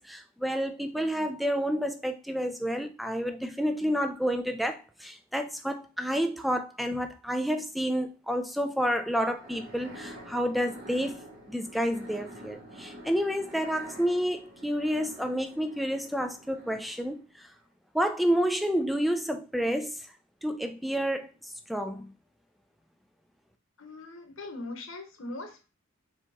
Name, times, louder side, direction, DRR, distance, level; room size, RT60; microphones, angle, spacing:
voice 1, 0.0-11.2 11.5-17.5 17.9-20.1 20.4-22.1, equal, ahead, 0.4 m, -29 dB
sound 1, 9.2-17.3, right 1 dB, 45° right, 1.1 m, -48 dB
voice 2, 23.8-25.7, left 2 dB, 70° left, 1.0 m, -40 dB
4.7 x 3.0 x 3.5 m
head